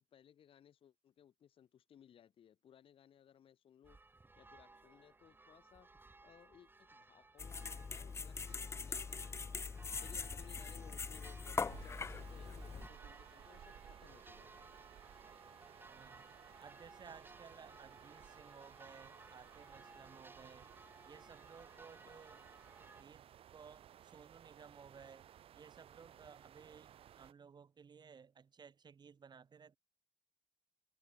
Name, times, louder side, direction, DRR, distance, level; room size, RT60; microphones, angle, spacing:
voice 1, 0.0-4.0 4.4-5.9 6.2-9.7 10.0-14.7 22.1-22.2, left 9 dB, 60° left, 7.1 m, -63 dB
sound 1, 3.8-23.0, right 3 dB, 20° right, 2.9 m, -60 dB
sound 2, 7.4-12.9, left 5 dB, 25° left, 0.5 m, -42 dB
sound 3, 11.7-27.3, right 10 dB, 65° right, 3.8 m, -59 dB
voice 2, 15.8-16.3 16.6-20.7 21.0-22.4 23.0-25.3 25.5-29.8, right 6 dB, 45° right, 6.6 m, -58 dB
supercardioid pair, 75°, 10 cm